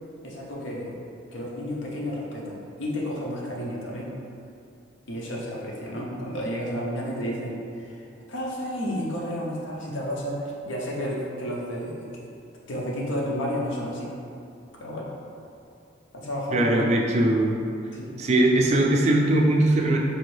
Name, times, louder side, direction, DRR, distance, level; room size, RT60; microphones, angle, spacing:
voice 1, 0.2-1.0 1.3-4.1 5.1-12.3 12.7-14.1 14.7-15.1 16.1-16.9 17.9-18.1, equal, 80° left, -3 dB, 0.7 m, -31 dB
voice 2, 16.5-17.6 18.2-20.0, right 1 dB, 35° right, 0 dB, 0.3 m, -20 dB
4.3 x 2.6 x 3.2 m, 2.5 s
head